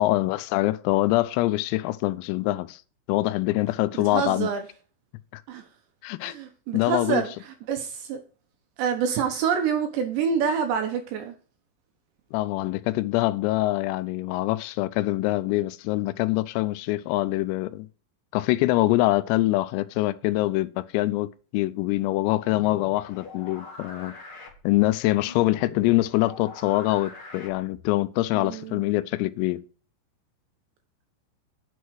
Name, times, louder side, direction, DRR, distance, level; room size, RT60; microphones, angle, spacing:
voice 1, 0.0-2.8 3.1-4.5 5.3-5.4 6.0-6.4 6.7-7.2 12.3-17.9 18.3-24.1 24.6-29.6, left 18 dB, 85° left, 3.3 m, -24 dB
voice 2, 4.1-4.6 5.5-5.7 6.2-7.3 7.7-8.2 8.8-11.4 28.3-28.8, right 7 dB, 75° right, 2.8 m, -27 dB
sound 1, 22.4-28.0, left 3 dB, 45° left, 1.8 m, -44 dB
9.2 x 6.3 x 4.7 m
omnidirectional pair, 6.0 m